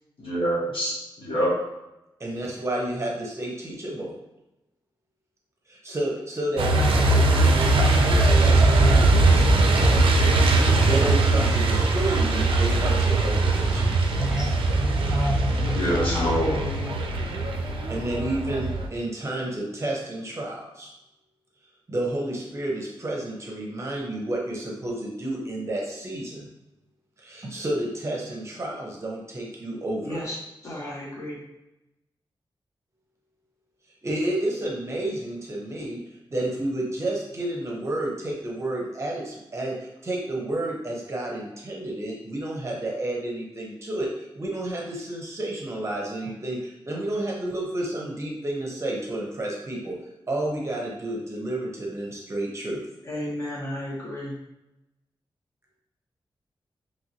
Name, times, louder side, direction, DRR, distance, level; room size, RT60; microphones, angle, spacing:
voice 1, 0.2-0.9 1.2-1.5 15.7-16.6, right 1 dB, 80° left, -6 dB, 1.1 m, -25 dB
voice 2, 2.2-4.1 5.7-9.6 10.8-14.0 17.9-20.9 21.9-26.5 27.2-30.2 34.0-36.0 36.3-50.0 50.3-52.8, right 1 dB, 35° right, -2 dB, 0.7 m, -31 dB
Truck, 6.6-18.9, right 2 dB, 80° right, 0.4 m, -20 dB
voice 3, 14.2-16.0, equal, 10° right, -2 dB, 0.3 m, -30 dB
voice 4, 15.6-17.1 30.0-30.4 30.6-31.4 53.1-54.4, left 1 dB, 35° left, -5 dB, 1.0 m, -33 dB
3.0 x 2.7 x 2.7 m, 0.94 s
wide cardioid pair, 135°, 9 cm